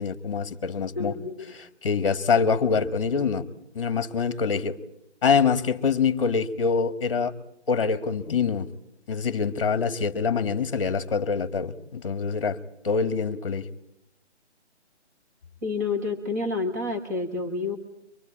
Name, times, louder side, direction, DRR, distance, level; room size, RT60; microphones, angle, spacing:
voice 1, 0.0-3.4 3.7-4.8 5.2-7.3 7.7-8.7 9.1-12.6 12.8-13.7, left 5 dB, 25° left, 11 dB, 1.5 m, -25 dB
voice 2, 1.0-1.5 15.6-17.8, left 3 dB, 15° right, 3 dB, 1.3 m, -29 dB
24.5 x 20.0 x 8.8 m, 0.80 s
hypercardioid pair, 170°, 36 cm